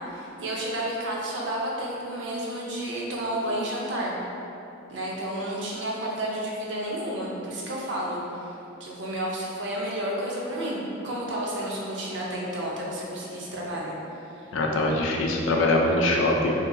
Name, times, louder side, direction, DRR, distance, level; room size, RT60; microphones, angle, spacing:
voice 1, 0.0-4.1 4.9-8.5 8.8-13.9 14.4-14.5, right 1 dB, 60° right, -4 dB, 0.6 m, -31 dB
voice 2, 14.5-16.5, left 2 dB, 75° left, 0 dB, 0.4 m, -23 dB
2.8 x 2.2 x 3.6 m, 2.9 s
head